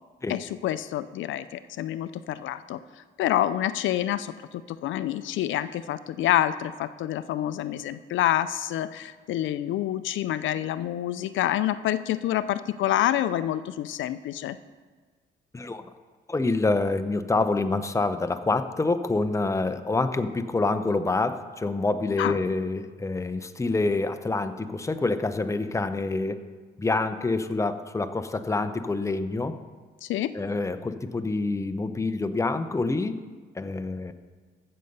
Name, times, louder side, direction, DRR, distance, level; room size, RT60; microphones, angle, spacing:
voice 1, 0.3-2.8 3.2-14.6 22.2-22.4 30.0-30.3, left 12 dB, 75° left, 14 dB, 0.4 m, -27 dB
voice 2, 15.5-15.8 16.3-26.4 26.8-29.6 30.3-33.2 33.6-34.1, left 3 dB, 15° left, 9 dB, 0.7 m, -27 dB
14.5 x 6.6 x 5.4 m, 1.5 s
cardioid pair, 90°, 20 cm